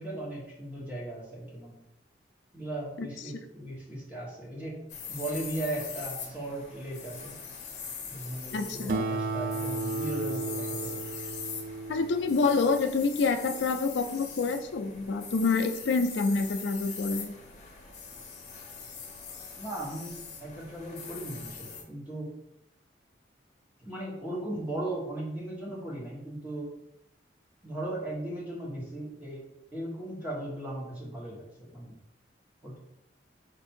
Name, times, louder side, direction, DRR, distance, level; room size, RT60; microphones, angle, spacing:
voice 1, 0.0-1.8 2.5-4.8 5.1-7.3 8.1-11.0 19.6-22.3 23.8-26.7 27.6-29.4 29.7-32.0 32.6-32.8, right 1 dB, 10° right, -5 dB, 1.2 m, -37 dB
sound 1, 4.9-21.8, left 6 dB, 40° left, 0.8 m, -42 dB
voice 2, 8.5-9.0 11.9-17.3, left 4 dB, 75° left, 7 dB, 0.4 m, -27 dB
Acoustic guitar, 8.9-13.7, right 3 dB, 45° right, 0.3 m, -35 dB
4.5 x 2.6 x 4.3 m, 0.81 s
head